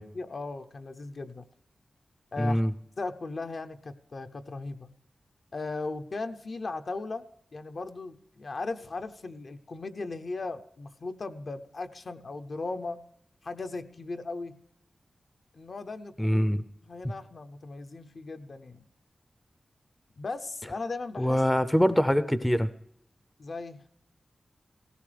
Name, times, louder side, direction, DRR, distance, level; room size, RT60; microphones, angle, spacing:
voice 1, 0.1-1.5 2.3-2.6 3.0-4.9 5.5-7.3 7.5-13.0 13.4-14.6 15.5-16.4 16.8-18.8 20.2-21.4 23.4-23.8, left 3 dB, 55° left, 8 dB, 0.7 m, -37 dB
voice 2, 2.4-2.7 16.2-16.6 21.2-22.7, equal, 10° left, 13 dB, 0.5 m, -24 dB
17.0 x 16.5 x 3.3 m, 0.74 s
wide cardioid pair, 95°, 0 cm